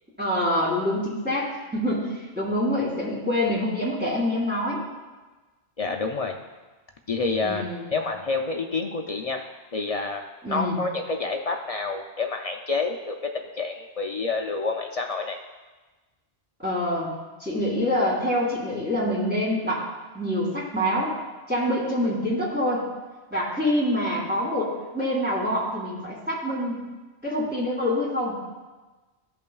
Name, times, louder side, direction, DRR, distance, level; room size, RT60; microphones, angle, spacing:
voice 1, 0.2-4.8 7.4-7.9 10.4-10.8 16.6-17.1 17.4-19.9 20.1-21.1 21.5-22.9 23.3-26.8 27.2-28.4, left 1 dB, 10° right, -5 dB, 2.2 m, -26 dB
voice 2, 5.8-6.4 7.1-15.4, left 3 dB, 55° left, 3 dB, 0.4 m, -28 dB
14.5 x 5.5 x 2.3 m, 1.2 s
omnidirectional pair, 1.1 m